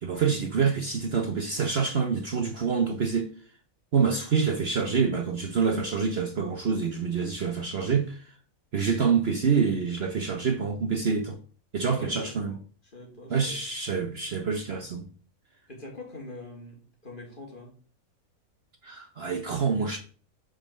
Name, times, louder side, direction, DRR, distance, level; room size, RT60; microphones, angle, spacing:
voice 1, 0.0-3.3 3.9-8.3 8.7-11.4 11.7-12.5 13.3-15.1 18.8-20.0, right 5 dB, 50° right, 1.0 m, -26 dB
voice 2, 11.9-12.6 12.9-13.6 15.7-17.7, left 2 dB, 35° left, 2.8 m, -43 dB
6.2 x 5.3 x 6.5 m
omnidirectional pair, 1.5 m